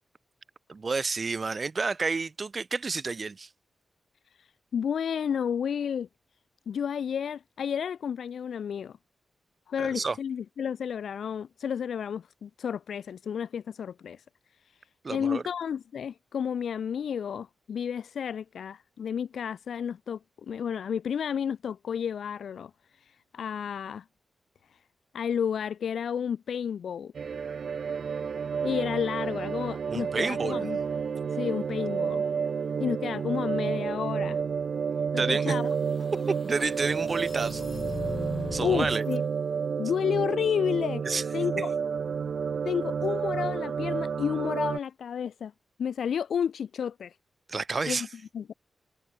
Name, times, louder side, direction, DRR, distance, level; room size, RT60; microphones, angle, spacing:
voice 1, 0.7-3.5 9.8-10.2 15.0-15.4 29.9-30.7 35.2-35.5 36.3-37.7 38.5-39.1 41.0-41.2 41.6-41.7 47.5-48.1, right 4 dB, 40° right, 0.4 m, -30 dB
voice 2, 4.4-6.1 6.7-9.0 9.7-14.2 15.1-20.2 20.5-24.0 24.7-24.8 25.1-27.1 28.6-30.8 31.3-32.2 32.8-34.4 35.1-35.7 38.6-39.2 39.8-41.1 41.3-41.7 42.6-45.5 45.8-47.2 47.9-48.1 48.3-48.5, left 8 dB, 85° left, 0.4 m, -31 dB
sound 1, 27.1-44.8, right 6 dB, 65° right, 1.0 m, -30 dB
sound 2, 35.5-39.2, left 4 dB, 40° left, 1.1 m, -40 dB
wide cardioid pair, 100°, 0 cm